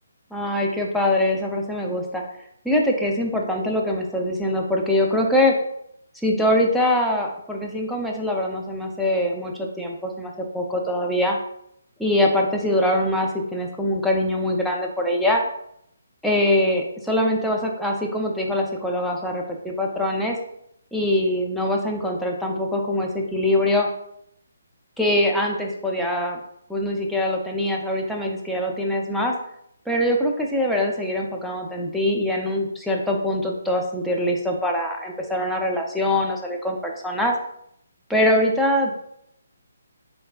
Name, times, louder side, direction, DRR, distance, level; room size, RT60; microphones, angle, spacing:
voice 1, 0.3-2.2 2.6-5.5 6.2-11.4 12.0-15.4 16.2-20.4 20.9-23.9 25.0-26.4 26.7-29.3 29.9-37.3 38.1-39.0, left 1 dB, ahead, -2 dB, 0.5 m, -23 dB
4.2 x 3.2 x 2.4 m, 0.73 s
figure-of-eight pair, 145°, 0 cm